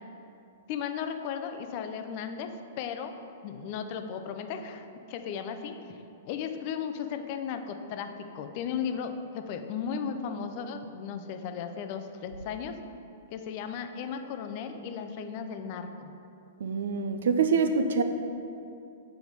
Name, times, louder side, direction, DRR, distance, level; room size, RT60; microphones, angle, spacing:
voice 1, 0.7-3.1 3.4-6.0 6.3-12.8 13.3-16.1, left 7 dB, 45° left, 7 dB, 0.5 m, -35 dB
voice 2, 16.6-18.0, right 5 dB, 70° right, 8 dB, 0.5 m, -25 dB
7.1 x 4.5 x 4.0 m, 2.6 s
hypercardioid pair, 110°, 0 cm